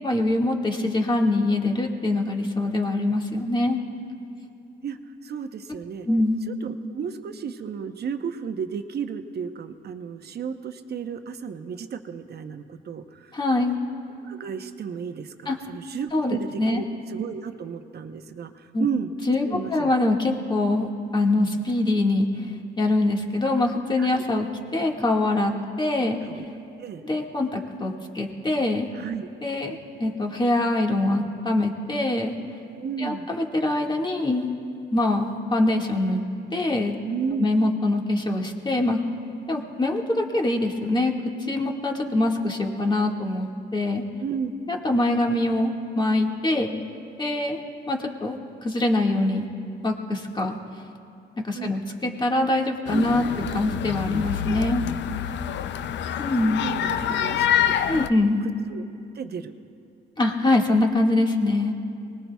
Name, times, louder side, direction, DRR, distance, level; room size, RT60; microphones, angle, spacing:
voice 1, 0.0-3.8 6.0-6.4 13.3-13.8 15.4-15.6 16.1-16.8 18.7-18.8 19.3-20.9 21.1-24.5 24.7-25.5 25.8-26.2 27.0-28.9 29.4-32.3 33.0-34.5 34.9-36.2 36.5-36.9 37.4-39.0 39.5-41.1 41.4-44.0 44.7-46.7 47.2-47.6 47.9-49.5 49.8-50.5 51.4-53.2 53.5-54.8 56.2-56.6 57.9-58.4 60.2-61.7, left 2 dB, 20° left, 0 dB, 1.8 m, -24 dB
voice 2, 5.2-6.1 6.6-13.3 14.2-19.1 19.4-19.9 24.0-24.2 26.3-26.4 26.8-27.0 28.9-29.3 32.8-33.3 37.0-37.5 44.2-44.5 51.5-51.8 52.9-53.1 56.4-57.8 58.7-58.8 59.1-59.5, right 7 dB, 55° right, 8 dB, 0.9 m, -33 dB
sound 1, 52.9-58.1, left 10 dB, 65° left, 0.5 m, -26 dB
24.5 x 20.0 x 2.3 m, 2.6 s
cardioid pair, 90°, 20 cm